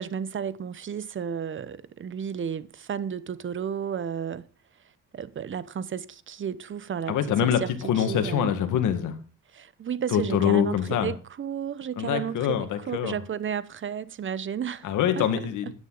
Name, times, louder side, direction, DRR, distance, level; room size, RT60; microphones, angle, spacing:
voice 1, 0.0-4.4 5.1-7.2 7.4-8.6 9.5-14.9 15.2-15.3, right 8 dB, 40° right, 0.8 m, -33 dB
voice 2, 7.1-7.6 7.9-9.2 10.1-11.1 12.0-13.2 14.8-15.7, left 9 dB, 80° left, 1.9 m, -24 dB
12.5 x 9.8 x 4.0 m
cardioid pair, 90°, 30 cm